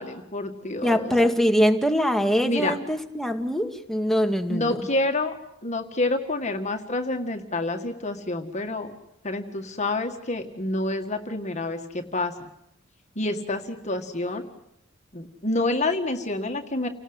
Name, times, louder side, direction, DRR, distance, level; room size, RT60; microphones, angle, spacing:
voice 1, 0.0-1.1 2.5-2.8 4.5-5.4 5.6-8.9 9.2-12.3 13.2-14.4 15.1-16.9, left 2 dB, 35° left, 5 dB, 1.9 m, -28 dB
voice 2, 0.8-4.8, equal, ahead, 5 dB, 1.9 m, -23 dB
30.0 x 18.5 x 8.1 m, 0.82 s
head